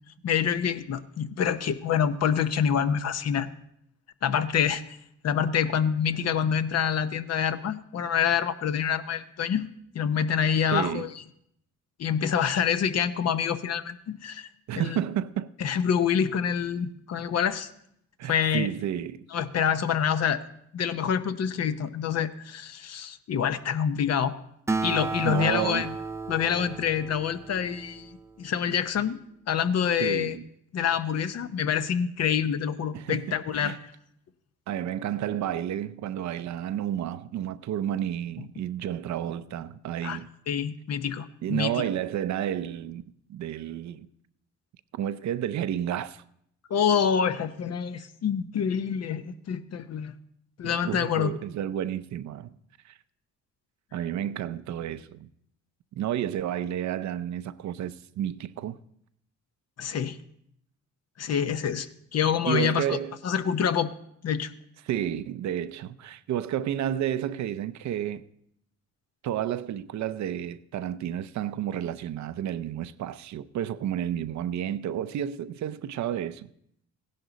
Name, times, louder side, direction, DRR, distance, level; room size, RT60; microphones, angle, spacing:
voice 1, 0.2-3.5 4.2-4.8 5.2-9.7 9.9-11.1 12.0-14.5 14.7-15.0 15.6-17.7 18.3-18.7 19.3-20.4 20.7-24.3 24.8-25.9 26.3-29.2 29.5-30.4 30.7-33.8 40.0-40.2 40.5-41.8 46.7-50.1 50.6-51.3 59.8-60.2 61.2-63.0 63.2-63.9 64.2-64.5, left 8 dB, 55° left, 0.8 m, -26 dB
voice 2, 10.7-11.1 14.7-15.5 18.2-19.2 25.2-25.9 30.0-30.5 32.9-33.8 34.7-40.3 41.4-43.0 43.3-44.1 44.9-46.2 50.8-52.5 52.8-53.0 53.9-55.3 55.9-58.8 62.5-63.1 64.8-68.2 69.2-76.5, right 10 dB, 65° right, 0.6 m, -31 dB
Acoustic guitar, 24.7-28.4, right 3 dB, 10° right, 0.4 m, -33 dB
16.0 x 11.0 x 4.0 m
cardioid pair, 90°, 30 cm